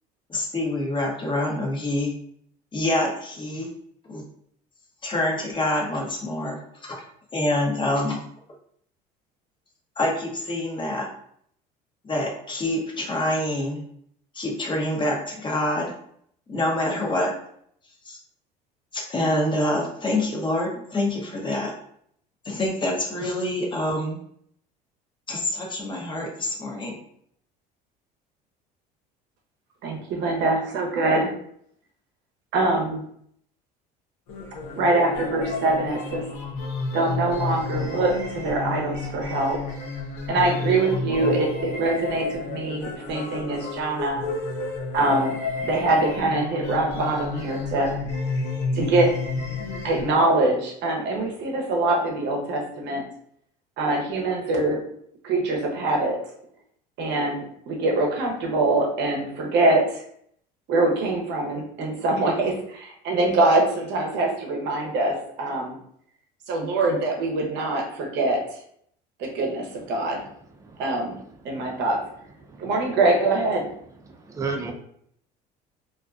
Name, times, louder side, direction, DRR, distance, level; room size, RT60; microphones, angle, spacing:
voice 1, 0.3-2.1 2.7-3.7 4.1-4.2 5.0-7.0 7.3-8.2 10.0-11.1 12.0-13.8 14.3-15.9 16.5-17.3 18.0-18.2 18.9-21.7 22.4-24.2 25.3-27.0, left 1 dB, 25° left, 0 dB, 0.8 m, -26 dB
voice 2, 29.8-31.3 32.5-33.0 34.8-36.2 36.9-39.6 40.3-44.3 44.9-45.4 45.6-48.0 48.7-49.1 49.8-53.0 53.8-54.8 55.2-56.2 57.0-60.0 60.7-65.8 66.5-68.4 69.2-70.2 70.8-71.2 71.4-72.0 72.6-73.7, right 2 dB, 60° right, 1 dB, 0.8 m, -23 dB
sound 1, 34.3-50.1, left 3 dB, 90° left, 0.6 m, -31 dB
voice 3, 71.5-71.8 72.4-72.7 74.1-74.7, right 4 dB, 15° right, 3 dB, 0.4 m, -34 dB
2.4 x 2.2 x 2.4 m, 0.67 s
supercardioid pair, 80°, 20 cm